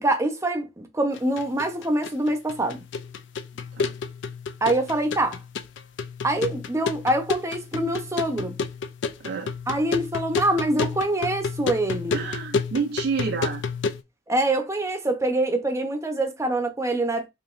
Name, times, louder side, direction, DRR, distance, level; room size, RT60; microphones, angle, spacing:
voice 1, 0.0-2.8 4.6-5.4 6.2-8.6 9.7-12.2 14.3-17.3, right 1 dB, 15° right, 0.6 m, -25 dB
sound 1, 1.2-14.0, left 5 dB, 75° left, 0.4 m, -31 dB
voice 2, 9.2-9.5 12.1-13.6, right 5 dB, 60° right, 0.4 m, -29 dB
4.9 x 2.7 x 2.4 m
head